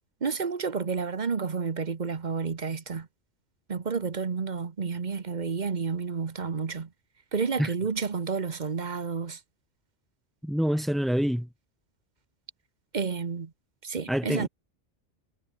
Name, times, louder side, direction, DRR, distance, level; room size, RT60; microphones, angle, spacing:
voice 1, 0.2-3.1 3.7-6.9 7.3-9.4 12.9-13.5 13.8-14.5, right 5 dB, 40° right, 1.2 m, -30 dB
voice 2, 10.4-11.5 14.1-14.5, equal, ahead, 3.7 m, -26 dB
omnidirectional pair, 1.2 m